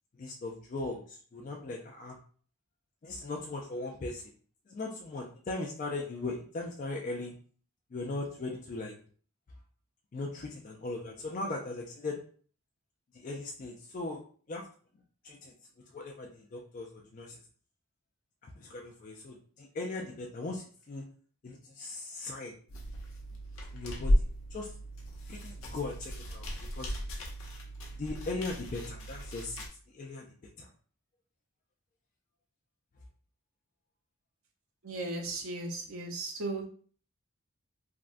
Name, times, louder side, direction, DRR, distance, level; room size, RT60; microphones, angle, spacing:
voice 1, 0.2-2.2 3.0-4.2 4.7-7.3 7.9-8.9 10.1-12.2 13.2-14.2 14.5-14.6 15.2-15.5 15.9-17.4 18.6-21.0 21.4-22.5 23.7-24.1 24.5-24.7 25.3-26.4 26.8-26.9 28.0-29.6 29.9-30.3 30.6-30.7, left 2 dB, 35° left, 0 dB, 0.3 m, -38 dB
sound 1, 22.7-29.7, equal, 65° left, 0.7 m, -34 dB
voice 2, 34.8-36.6, right 2 dB, 75° right, 2 dB, 0.7 m, -36 dB
3.5 x 2.1 x 2.5 m, 0.43 s
head